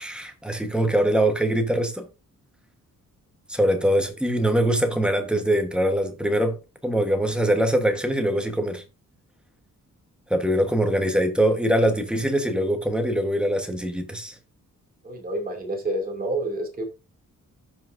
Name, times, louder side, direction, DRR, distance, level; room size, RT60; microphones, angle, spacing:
voice 1, 0.0-2.0 3.5-6.6 6.8-8.8 10.3-14.4, right 1 dB, 5° right, 1.2 m, -23 dB
voice 2, 15.0-16.8, right 1 dB, 25° right, 2.5 m, -28 dB
16.5 x 5.8 x 2.6 m
wide cardioid pair, 170°, 32 cm